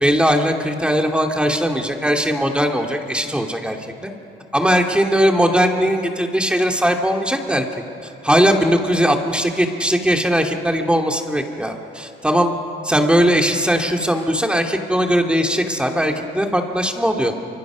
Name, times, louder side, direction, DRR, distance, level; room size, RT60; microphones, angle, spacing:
voice 1, 0.0-3.8 4.0-4.1 4.5-7.7 8.0-12.5 12.8-17.3, equal, 5° right, 2 dB, 2.6 m, -19 dB
27.5 x 25.0 x 6.3 m, 2.8 s
cardioid pair, 90°, 20 cm